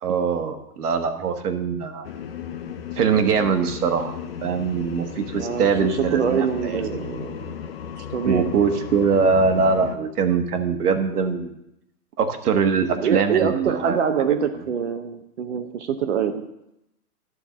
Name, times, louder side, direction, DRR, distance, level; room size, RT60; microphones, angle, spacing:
voice 1, 0.0-2.1 3.0-6.8 8.2-11.5 12.2-14.0 14.3-14.4, right 5 dB, 70° right, 6 dB, 1.4 m, -22 dB
sound 1, 2.0-10.0, left 8 dB, 40° left, 0.7 m, -35 dB
voice 2, 5.4-7.5 8.0-8.5 12.9-16.5, right 7 dB, 45° right, 8 dB, 0.8 m, -25 dB
11.0 x 4.6 x 7.2 m, 0.83 s
hypercardioid pair, 165°, 47 cm